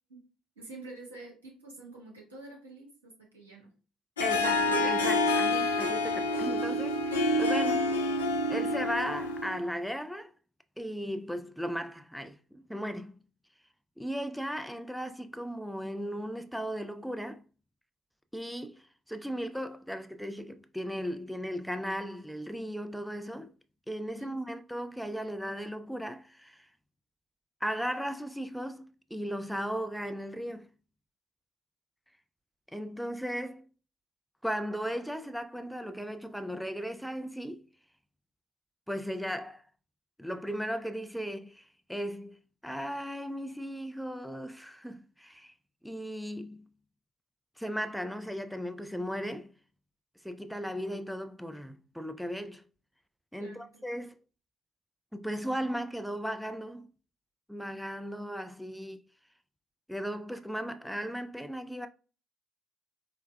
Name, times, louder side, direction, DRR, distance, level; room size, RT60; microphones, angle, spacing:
voice 1, 0.6-3.7 24.2-24.6 53.4-53.8, right 2 dB, 85° right, 1.0 m, -48 dB
Harp, 4.2-9.6, left 2 dB, 80° left, 0.3 m, -28 dB
voice 2, 4.2-8.0 8.5-10.3 10.8-13.2 14.0-17.4 18.3-23.5 23.9-26.7 27.6-30.7 32.7-33.6 34.4-37.7 38.9-39.6 40.2-42.4 42.6-45.5 45.8-46.7 47.6-49.5 50.2-52.6 53.3-54.2 55.1-56.9 57.5-59.0 59.9-61.9, equal, ahead, 0.3 m, -36 dB
4.5 x 2.1 x 2.2 m
figure-of-eight pair, 45°, 0 cm